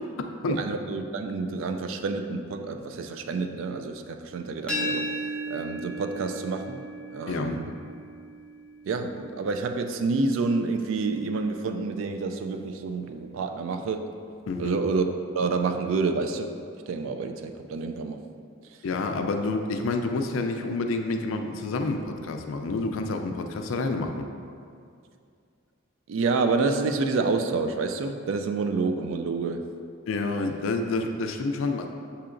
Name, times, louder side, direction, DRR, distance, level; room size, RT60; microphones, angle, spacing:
voice 1, 0.6-5.1 5.5-6.8 7.1-7.7 8.9-14.1 14.6-15.0 15.3-16.5 16.9-18.2 26.1-29.6, right 4 dB, 75° right, 7 dB, 0.3 m, -28 dB
sound 1, 4.7-10.4, equal, 5° left, 0.5 m, -36 dB
voice 2, 7.3-7.6 14.5-14.8 18.8-24.2 30.1-31.9, left 3 dB, 80° left, 5 dB, 0.4 m, -28 dB
6.7 x 2.8 x 2.5 m, 2.3 s
head